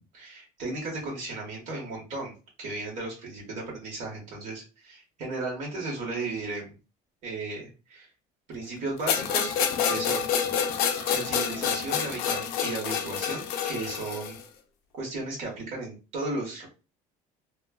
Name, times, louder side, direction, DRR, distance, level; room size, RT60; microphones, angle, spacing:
voice 1, 0.1-2.3 2.6-6.7 7.2-8.1 8.5-9.6 9.8-10.3 11.1-14.4 14.9-16.7, right 3 dB, 50° right, -3 dB, 1.3 m, -35 dB
sound 1, 9.1-14.4, left 7 dB, 70° left, 0.5 m, -28 dB
3.1 x 2.3 x 2.3 m, 0.30 s
cardioid pair, 170°, 16 cm